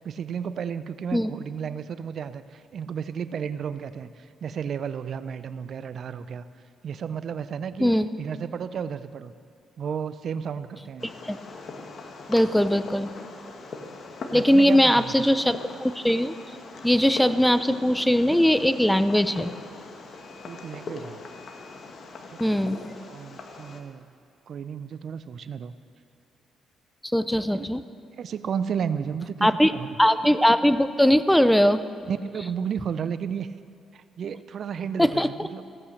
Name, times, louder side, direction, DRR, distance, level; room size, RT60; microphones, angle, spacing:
voice 1, 0.0-6.5 6.8-7.9 8.2-9.3 9.8-11.1 14.3-15.3 20.5-21.2 22.3-22.8 23.1-24.1 24.5-25.8 27.5-27.7 28.2-30.0 32.1-33.5 33.9-35.6, right 7 dB, 60° right, 13 dB, 0.5 m, -33 dB
Fireworks, 11.0-23.8, left 3 dB, 55° left, 1.4 m, -41 dB
voice 2, 12.3-13.1 14.3-16.3 16.8-19.5 22.4-22.8 27.1-27.8 29.4-29.7 30.0-31.8 35.0-35.6, equal, 5° left, 13 dB, 0.5 m, -20 dB
15.5 x 8.8 x 6.5 m, 2.5 s
cardioid pair, 90°, 0 cm